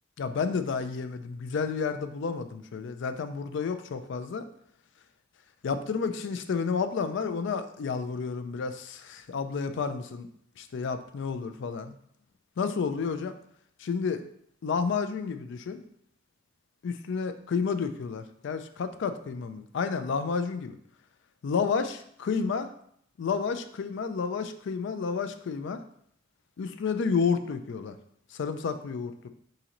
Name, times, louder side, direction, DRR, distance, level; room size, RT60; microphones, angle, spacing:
voice 1, 0.2-4.4 5.6-10.3 10.6-11.9 12.6-13.3 13.8-14.2 14.6-15.8 16.8-20.8 21.4-22.7 23.2-25.8 26.6-28.0 28.3-29.3, left 5 dB, 60° left, 9 dB, 0.4 m, -30 dB
4.1 x 3.8 x 2.9 m, 0.67 s
head